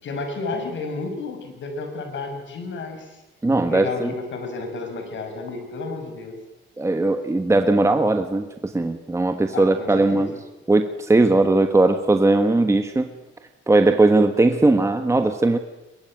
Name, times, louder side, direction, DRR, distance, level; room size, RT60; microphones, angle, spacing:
voice 1, 0.0-3.2 3.7-6.4 9.5-10.4, left 3 dB, 65° left, 5 dB, 6.6 m, -32 dB
voice 2, 3.4-4.1 6.8-10.3 10.7-13.1 13.7-15.6, right 2 dB, 15° right, 7 dB, 1.4 m, -19 dB
23.0 x 21.0 x 9.2 m, 0.98 s
cardioid pair, 125°, 21 cm